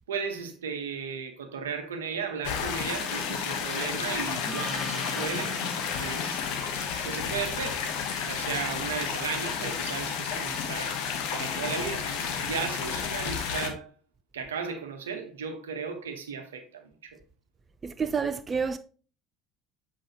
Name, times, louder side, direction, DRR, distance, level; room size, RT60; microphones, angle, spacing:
voice 1, 0.0-5.6 6.0-7.9 8.2-11.0 11.3-13.9 14.3-17.2, right 6 dB, 80° right, 1.0 m, -35 dB
sound 1, 2.4-13.7, left 7 dB, 65° left, 1.1 m, -31 dB
Gong, 4.5-9.2, equal, 10° left, 2.3 m, -43 dB
voice 2, 17.8-18.8, right 5 dB, 30° right, 0.5 m, -29 dB
7.6 x 4.9 x 2.9 m
figure-of-eight pair, 60°, 0 cm